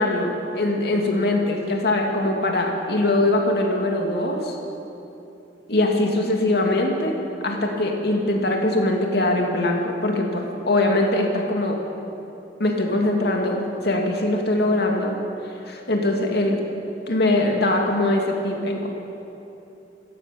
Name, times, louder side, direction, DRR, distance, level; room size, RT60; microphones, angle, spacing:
voice 1, 0.0-4.5 5.7-11.8 12.6-15.2 15.7-16.6 17.1-18.9, left 1 dB, 65° left, 1 dB, 2.7 m, -22 dB
26.5 x 14.5 x 7.1 m, 2.8 s
head